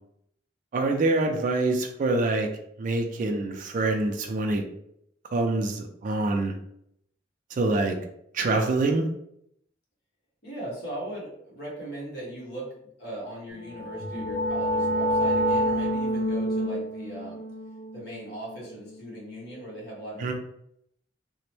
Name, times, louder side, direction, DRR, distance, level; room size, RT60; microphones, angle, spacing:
voice 1, 0.7-2.5 2.8-4.6 5.3-6.5 7.5-8.0 8.3-9.0 20.2-20.3, right 2 dB, 45° right, 3 dB, 0.3 m, -25 dB
voice 2, 3.1-3.5 10.4-12.7 13.0-17.5 17.9-20.3, right 1 dB, 60° left, -4 dB, 1.2 m, -39 dB
sound 1, 13.6-19.2, equal, 80° left, 0.7 m, -28 dB
2.9 x 2.1 x 3.0 m, 0.73 s
head